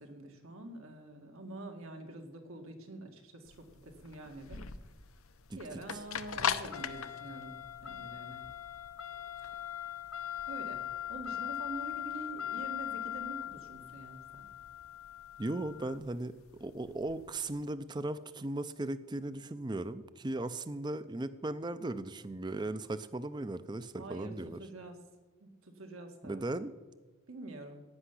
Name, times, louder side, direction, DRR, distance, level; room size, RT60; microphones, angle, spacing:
voice 1, 0.0-4.6 5.5-8.4 10.5-10.8 11.1-14.5 24.0-25.0 25.4-26.4 27.3-27.8, right 2 dB, 75° right, 4 dB, 2.1 m, -46 dB
sound 1, 3.5-17.6, left 9 dB, 80° left, 0.8 m, -40 dB
voice 2, 15.4-16.3 16.6-24.6 26.2-26.7, right 2 dB, 20° right, 13 dB, 0.5 m, -37 dB
16.0 x 5.8 x 9.8 m, 1.3 s
head